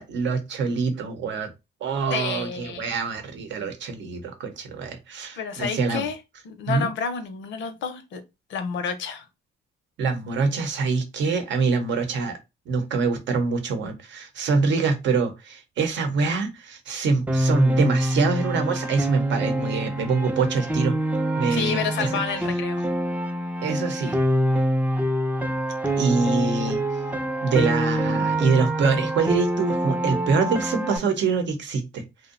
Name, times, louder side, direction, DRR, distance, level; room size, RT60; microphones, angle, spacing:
voice 1, 0.0-1.5 1.8-6.1 6.7-6.9 10.0-12.4 12.7-21.0 21.4-22.2 23.6-24.2 26.0-26.8 27.4-32.0, right 4 dB, 65° right, 0.7 m, -25 dB
voice 2, 2.1-3.0 5.4-6.2 6.4-8.2 8.5-9.2 21.5-22.8, left 6 dB, 70° left, 0.6 m, -29 dB
Piano, 17.3-31.0, right 1 dB, 10° right, 0.4 m, -25 dB
2.6 x 2.1 x 2.5 m
cardioid pair, 90°, 20 cm